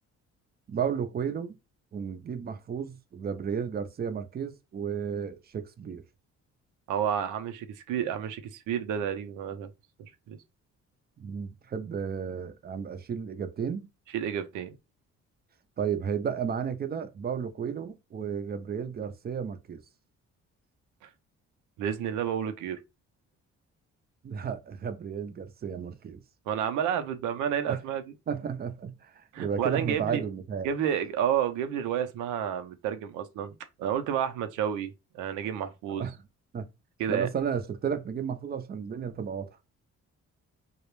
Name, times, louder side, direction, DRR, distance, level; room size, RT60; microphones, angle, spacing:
voice 1, 0.7-1.6 1.9-6.0 11.2-13.9 15.8-19.8 24.2-26.2 27.7-27.8 28.3-30.7 36.0-36.2 36.5-36.7 37.1-39.5, right 7 dB, 35° right, 0.4 m, -33 dB
voice 2, 6.9-9.7 10.0-10.4 14.1-14.7 21.8-22.8 26.5-28.0 29.3-30.2 30.6-36.1 37.0-37.3, right 9 dB, 85° right, 0.5 m, -30 dB
2.3 x 2.1 x 3.0 m
cardioid pair, 90°, 30 cm